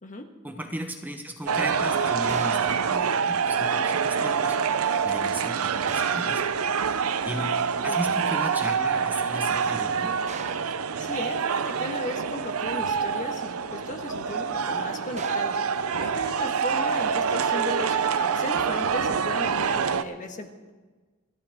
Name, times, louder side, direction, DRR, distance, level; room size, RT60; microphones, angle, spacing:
voice 1, 0.4-4.6 5.0-6.4 7.2-10.2, right 1 dB, 10° right, 4 dB, 1.0 m, -36 dB
sound 1, 1.5-20.0, right 6 dB, 75° right, 0.6 m, -26 dB
sound 2, 2.3-2.8 5.9-6.3 10.3-10.7 15.2-15.6, right 5 dB, 35° right, 0.9 m, -40 dB
voice 2, 7.3-8.0 11.0-15.6 15.9-20.7, left 2 dB, 35° left, 5 dB, 1.5 m, -36 dB
28.0 x 11.5 x 3.6 m, 1.3 s
head